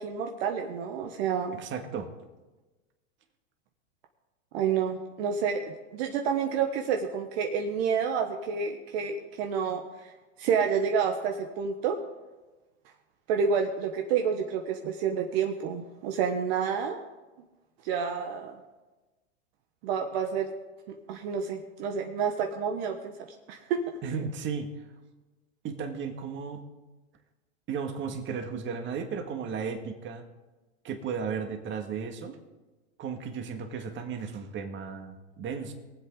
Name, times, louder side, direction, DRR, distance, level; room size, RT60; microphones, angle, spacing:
voice 1, 0.0-1.6 4.5-5.6 5.9-10.1 10.4-12.0 13.3-17.0 17.8-18.6 19.8-20.5 21.1-23.1 23.5-23.8, right 6 dB, 55° right, 4 dB, 1.3 m, -29 dB
voice 2, 1.6-2.1 24.0-24.7 25.6-26.6 27.7-30.3 30.8-32.4 33.0-35.7, right 6 dB, 30° right, 5 dB, 1.8 m, -34 dB
23.0 x 7.8 x 3.9 m, 1.2 s
hypercardioid pair, 115°, 37 cm